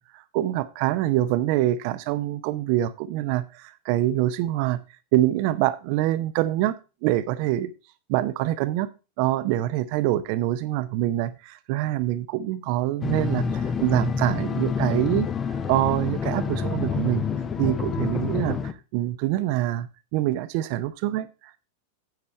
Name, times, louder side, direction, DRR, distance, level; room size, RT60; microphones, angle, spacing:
voice 1, 0.0-4.8 5.1-6.8 7.0-7.7 8.1-8.9 9.2-15.3 15.7-17.2 17.6-21.6, right 14 dB, 45° right, 14 dB, 0.6 m, -25 dB
sound 1, 13.0-18.7, left 6 dB, 20° left, 0.7 m, -27 dB
10.5 x 8.1 x 3.2 m, 0.29 s
figure-of-eight pair, 90°, 0 cm